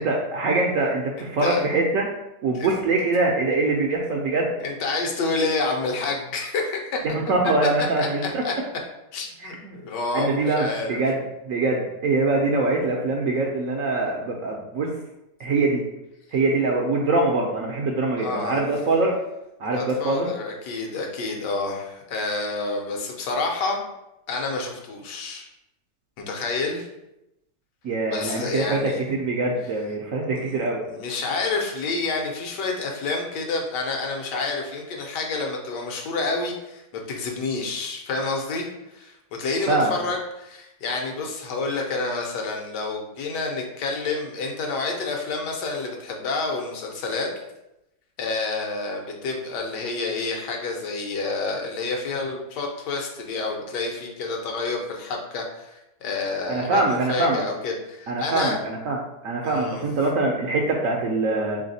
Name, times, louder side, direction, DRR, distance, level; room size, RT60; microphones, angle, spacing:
voice 1, 0.0-2.1 2.4-4.5 7.0-8.6 9.4-9.8 10.1-14.9 15.4-15.9 16.3-19.2 19.6-20.3 27.8-30.8 39.7-40.0 56.5-57.4 58.1-59.0 59.2-61.6, right 2 dB, 65° right, 0 dB, 0.8 m, -23 dB
voice 2, 1.2-1.6 2.5-2.7 4.6-7.0 7.6-7.7 8.0-8.1 8.4-8.5 9.1-9.6 9.8-11.0 18.2-18.6 19.7-23.8 24.3-25.5 26.2-26.9 28.1-29.0 30.3-30.6 30.9-39.1 39.4-47.3 48.2-58.6 59.4-59.8, left 3 dB, 80° left, 1 dB, 1.4 m, -29 dB
3.5 x 3.2 x 4.0 m, 0.89 s
omnidirectional pair, 1.8 m